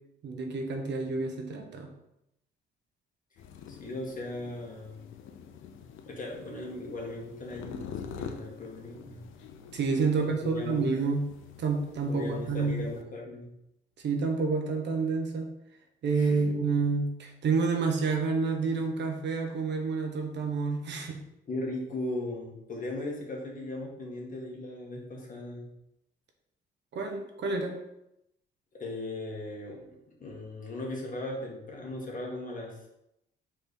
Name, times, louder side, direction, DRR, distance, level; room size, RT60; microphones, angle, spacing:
voice 1, 0.2-1.9 9.7-11.3 11.6-12.9 14.0-15.6 16.0-21.2 26.9-27.8, right 4 dB, 60° right, 3 dB, 1.1 m, -29 dB
sound 1, 3.4-13.0, left 7 dB, 80° left, 0.7 m, -46 dB
voice 2, 3.7-5.0 6.0-9.3 10.1-10.9 12.1-13.5 16.1-16.5 20.9-21.1 21.5-25.7 28.7-29.9 30.2-32.9, left 2 dB, 40° left, -1 dB, 1.9 m, -38 dB
4.3 x 4.1 x 5.3 m, 0.83 s
cardioid pair, 90°, 20 cm